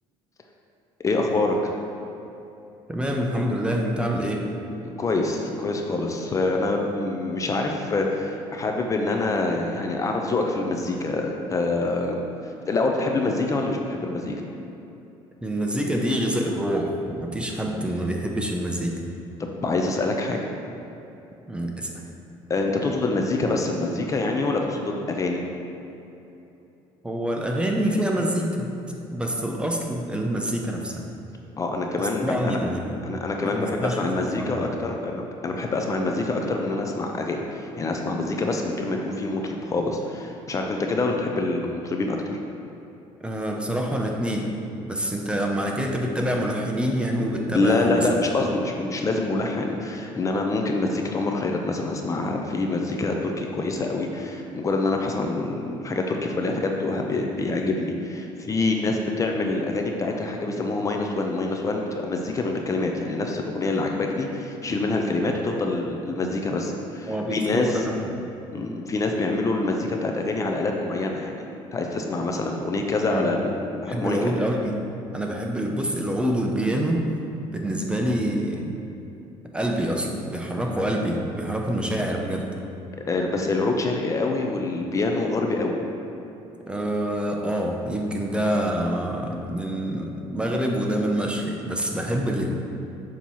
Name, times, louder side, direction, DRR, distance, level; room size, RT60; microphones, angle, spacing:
voice 1, 1.0-1.8 4.8-14.4 19.6-20.4 22.5-25.4 31.6-32.6 33.0-42.4 47.5-67.8 68.5-74.2 83.0-85.8, left 2 dB, 30° left, 2 dB, 0.6 m, -26 dB
voice 2, 2.9-4.5 15.4-18.9 21.5-21.9 27.0-28.8 29.1-31.0 32.0-32.9 33.4-34.5 43.2-44.5 44.8-48.1 67.1-68.2 73.1-73.4 73.9-74.8 75.1-77.0 77.5-78.7 79.5-82.5 86.7-92.5, equal, 10° right, 1 dB, 0.7 m, -26 dB
7.2 x 3.0 x 5.5 m, 2.9 s
cardioid pair, 105°, 11 cm